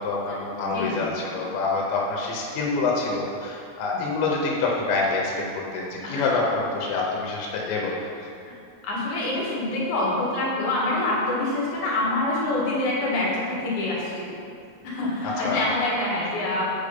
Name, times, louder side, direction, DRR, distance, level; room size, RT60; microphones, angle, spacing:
voice 1, 0.0-7.9 15.2-15.6, left 3 dB, 85° left, -2 dB, 3.2 m, -26 dB
voice 2, 0.7-1.1 3.9-4.0 6.0-6.2 8.5-8.6 8.8-14.4 14.8-16.6, left 2 dB, 55° left, -5 dB, 2.7 m, -26 dB
8.9 x 5.1 x 5.2 m, 2.5 s
omnidirectional pair, 5.0 m